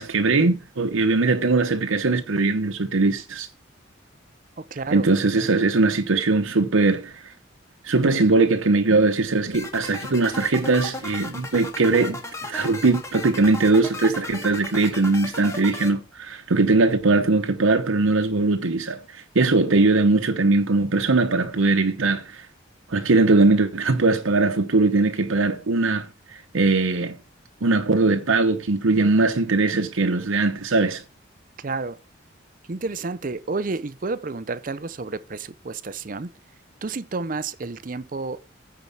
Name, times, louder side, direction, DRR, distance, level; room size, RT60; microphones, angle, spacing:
voice 1, 0.0-3.5 4.9-7.3 7.8-22.5 22.9-27.2 27.6-31.0, right 3 dB, 85° right, 0.9 m, -20 dB
voice 2, 4.6-5.1 31.6-32.0 32.7-36.3 36.8-38.4, right 3 dB, 45° right, 0.6 m, -30 dB
sound 1, 9.5-15.9, left 2 dB, 15° left, 1.7 m, -35 dB
9.6 x 4.6 x 7.0 m
head